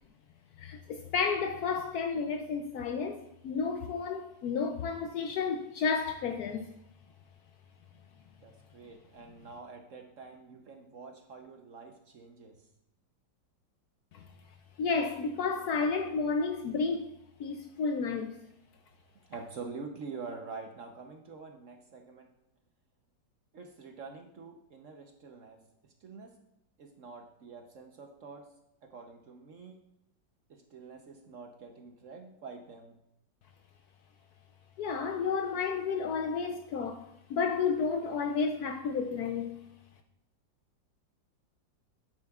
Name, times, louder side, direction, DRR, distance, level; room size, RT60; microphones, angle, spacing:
voice 1, 0.6-6.7 14.8-17.1 17.4-18.3 34.8-37.0 37.3-39.6, left 5 dB, 70° left, 0.9 m, -31 dB
voice 2, 8.4-12.6 19.3-22.3 23.5-26.4 26.8-28.5 28.8-29.8 30.5-32.9, right 4 dB, 55° right, 0.9 m, -46 dB
11.0 x 8.8 x 2.3 m
omnidirectional pair, 2.0 m